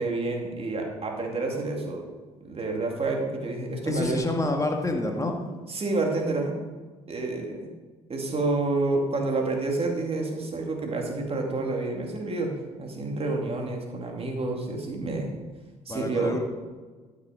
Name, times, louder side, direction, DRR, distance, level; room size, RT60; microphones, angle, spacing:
voice 1, 0.0-2.0 2.4-4.2 5.7-6.6 7.1-7.7 8.1-12.5 12.8-15.3 15.9-16.4, right 3 dB, 35° right, 1 dB, 2.6 m, -29 dB
voice 2, 3.9-5.4 15.9-16.4, left 2 dB, 20° left, 3 dB, 2.0 m, -27 dB
12.0 x 6.7 x 5.1 m, 1.3 s
hypercardioid pair, 65°, 16 cm